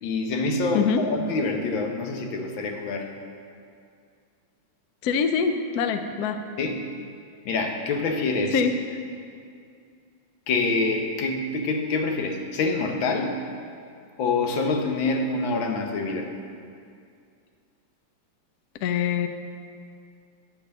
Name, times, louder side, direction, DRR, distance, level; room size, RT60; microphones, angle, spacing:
voice 1, 0.0-3.1 6.6-6.9 7.4-8.6 10.5-13.4 14.2-16.3, left 3 dB, 90° left, 3 dB, 1.6 m, -26 dB
voice 2, 5.0-6.4 8.5-8.7 18.8-19.3, left 6 dB, 70° left, 8 dB, 0.9 m, -24 dB
9.9 x 4.7 x 6.5 m, 2.3 s
omnidirectional pair, 2.1 m